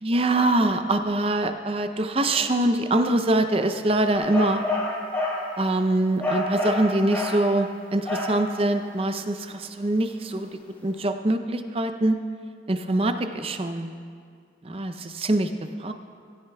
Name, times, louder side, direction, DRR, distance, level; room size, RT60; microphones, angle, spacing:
voice 1, 0.0-4.6 5.6-10.5 10.8-12.2 12.7-13.9 14.6-15.5 15.8-15.9, right 1 dB, 30° right, 8 dB, 0.5 m, -24 dB
sound 1, 4.1-5.5 6.2-7.5 8.1-8.5, left 2 dB, 10° left, 1.5 m, -28 dB
17.0 x 16.5 x 2.3 m, 2.2 s
head